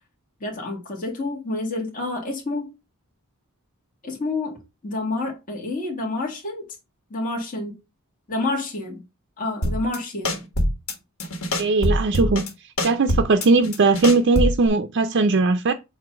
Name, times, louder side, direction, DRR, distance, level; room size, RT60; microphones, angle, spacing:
voice 1, 0.4-2.7 4.0-6.6 7.1-7.8 8.3-9.0 9.4-10.4, left 2 dB, 40° left, 1.8 m, -28 dB
sound 1, 9.6-10.0 10.3-10.9 11.2-12.5 12.8-14.7, equal, 80° left, 1.6 m, -23 dB
voice 2, 11.6-12.4 12.8-15.7, right 3 dB, 55° right, 0.5 m, -19 dB
7.6 x 2.7 x 5.1 m
head